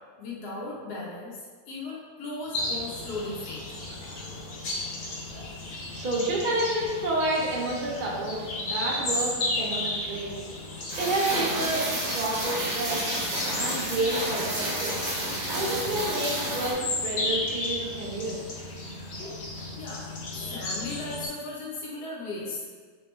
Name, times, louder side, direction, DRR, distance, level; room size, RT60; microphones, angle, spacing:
voice 1, 0.2-1.4 1.7-3.7 19.8-20.0 20.3-22.6, left 2 dB, 80° left, -5 dB, 1.3 m, -36 dB
sound 1, 2.5-21.3, left 2 dB, 60° left, 0.7 m, -34 dB
voice 2, 5.9-10.3 11.0-11.9 12.1-13.1 13.6-15.0 15.5-18.4, right 2 dB, 70° right, -4 dB, 0.4 m, -29 dB
Rain, 10.9-16.7, right 1 dB, 35° right, 0.8 m, -30 dB
3.4 x 3.0 x 3.1 m, 1.5 s
omnidirectional pair, 1.7 m